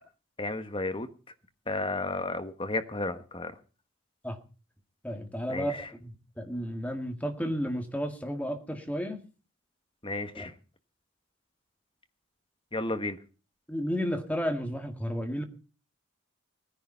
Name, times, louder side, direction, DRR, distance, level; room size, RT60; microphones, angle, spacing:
voice 1, 0.4-1.1 1.7-3.5 5.5-5.8 10.0-10.5 12.7-13.2, left 2 dB, 25° left, 9 dB, 1.3 m, -32 dB
voice 2, 5.0-9.2 10.3-10.5 13.7-15.4, equal, 5° left, 5 dB, 1.9 m, -32 dB
19.0 x 10.0 x 5.6 m, 0.36 s
head